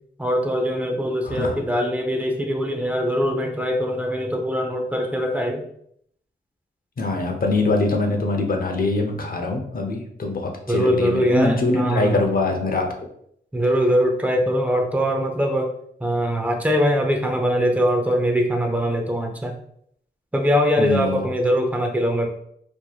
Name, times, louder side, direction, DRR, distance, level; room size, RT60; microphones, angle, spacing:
voice 1, 0.2-5.6 10.7-12.2 13.5-15.7 16.0-19.5 20.3-22.3, equal, 10° right, 2 dB, 0.7 m, -22 dB
voice 2, 1.2-1.6 7.0-12.9 20.8-21.3, left 2 dB, 50° left, 3 dB, 0.8 m, -23 dB
4.5 x 2.8 x 2.4 m, 0.69 s
wide cardioid pair, 85°, 19 cm